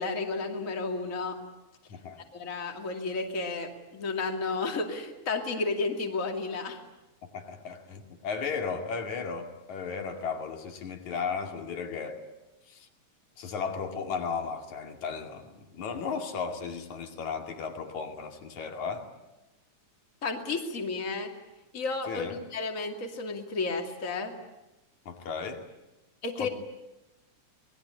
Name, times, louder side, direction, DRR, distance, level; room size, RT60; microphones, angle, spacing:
voice 1, 0.0-1.4 2.3-6.8 20.2-21.3 21.7-24.3 26.2-26.5, left 3 dB, 30° left, 3 dB, 2.7 m, -32 dB
voice 2, 1.9-2.3 7.2-12.2 12.7-12.9 13.4-19.1 22.1-22.4 25.1-25.7 26.4-26.5, left 5 dB, 75° left, 4 dB, 3.8 m, -35 dB
27.0 x 21.0 x 9.9 m, 0.98 s
omnidirectional pair, 3.4 m